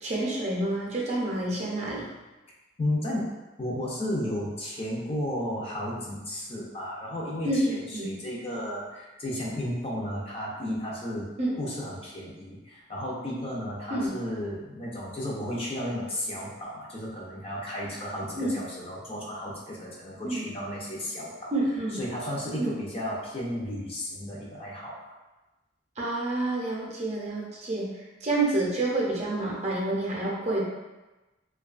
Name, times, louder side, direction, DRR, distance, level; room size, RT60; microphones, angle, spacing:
voice 1, 0.0-2.1 7.4-8.1 11.4-11.6 13.9-14.1 18.4-18.6 20.2-20.4 21.5-22.0 22.6-22.7 26.0-27.9 28.2-30.6, right 2 dB, 35° right, -4 dB, 0.5 m, -28 dB
voice 2, 2.8-11.3 11.6-21.5 21.9-25.1, left 1 dB, 30° left, -4 dB, 0.5 m, -33 dB
2.7 x 2.2 x 2.4 m, 1.1 s
head